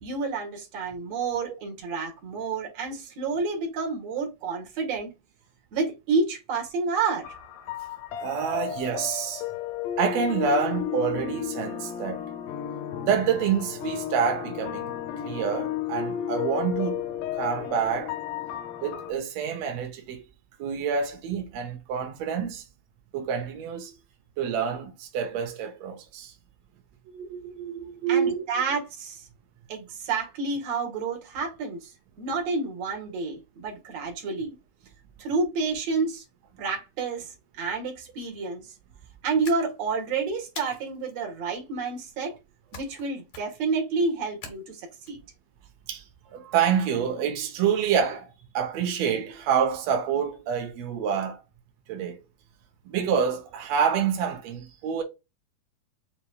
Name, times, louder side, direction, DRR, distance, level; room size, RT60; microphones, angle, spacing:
voice 1, 0.0-5.1 5.7-7.4 8.7-8.8 28.1-29.2 29.7-31.9 32.2-34.6 35.2-36.2 36.6-38.6 39.2-42.3 42.7-44.8 45.1-45.2, right 4 dB, 55° right, 2.3 m, -29 dB
sound 1, 7.2-19.1, left 10 dB, 85° left, 2.6 m, -33 dB
voice 2, 8.2-9.4 10.0-12.2 13.0-14.9 15.2-17.1 17.4-18.2 18.8-20.2 20.6-22.7 23.1-23.9 24.4-26.3 27.1-28.4 45.9-46.0 46.3-48.3 48.5-51.4 51.9-52.2 52.8-55.0, right 7 dB, 80° right, 1.5 m, -27 dB
sound 2, 39.4-40.0 40.6-41.1 42.7-43.0 43.3-43.7 44.4-45.1, left 5 dB, 65° left, 1.3 m, -43 dB
6.8 x 3.0 x 2.3 m
omnidirectional pair, 4.1 m